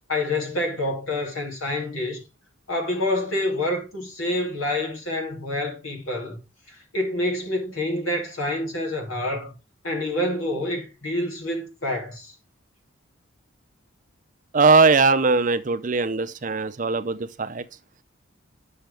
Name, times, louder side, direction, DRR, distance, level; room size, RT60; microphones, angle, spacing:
voice 1, 0.1-2.2 2.7-6.4 6.7-9.6 9.8-12.3, left 1 dB, 80° left, 2.8 m, -27 dB
voice 2, 14.5-17.6, right 4 dB, 40° right, 0.5 m, -20 dB
8.9 x 6.4 x 3.4 m
head